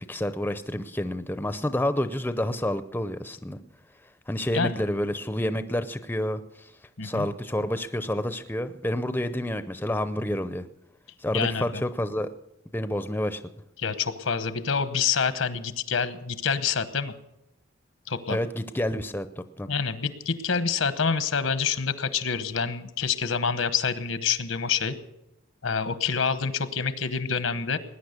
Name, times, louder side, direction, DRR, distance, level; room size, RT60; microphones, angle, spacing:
voice 1, 0.0-3.6 4.3-6.7 7.0-10.6 11.2-12.3 12.7-13.4 18.3-19.7, left 1 dB, 10° left, 11 dB, 0.6 m, -29 dB
voice 2, 11.3-11.8 13.8-17.1 18.1-18.4 19.7-24.9 25.6-27.8, left 6 dB, 75° left, 12 dB, 1.1 m, -27 dB
19.5 x 10.0 x 6.6 m, 0.86 s
head